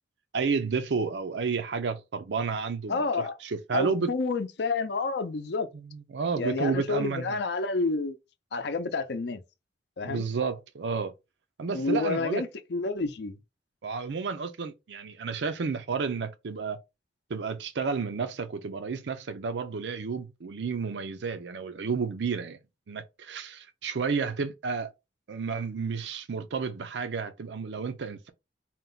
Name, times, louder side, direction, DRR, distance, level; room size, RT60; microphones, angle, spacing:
voice 1, 0.3-4.1 5.9-7.4 10.0-11.1 11.6-12.4 13.8-16.8 17.3-22.6 22.9-24.9 25.3-28.3, right 5 dB, 80° right, 0.5 m, -31 dB
voice 2, 2.9-3.4 3.7-5.7 6.4-8.2 8.5-9.4 10.0-10.3 11.7-13.3, left 3 dB, 70° left, 0.5 m, -29 dB
4.4 x 2.2 x 3.8 m
head